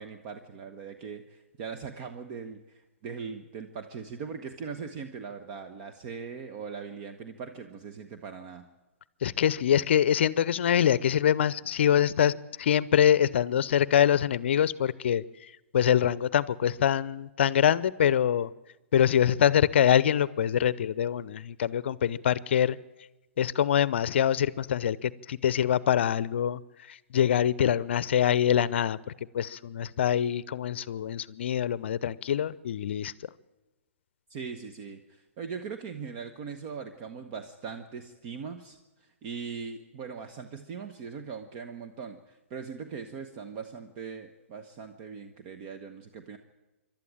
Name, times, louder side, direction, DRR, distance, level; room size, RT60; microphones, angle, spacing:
voice 1, 0.0-8.7 34.3-46.4, right 6 dB, 40° right, 7 dB, 1.3 m, -40 dB
voice 2, 9.2-12.3 12.6-15.2 15.7-18.5 18.9-22.8 23.4-26.6 26.9-29.0 29.3-33.1, left 9 dB, 60° left, 20 dB, 0.6 m, -24 dB
26.5 x 12.0 x 8.9 m, 1.0 s
figure-of-eight pair, 120°, 7 cm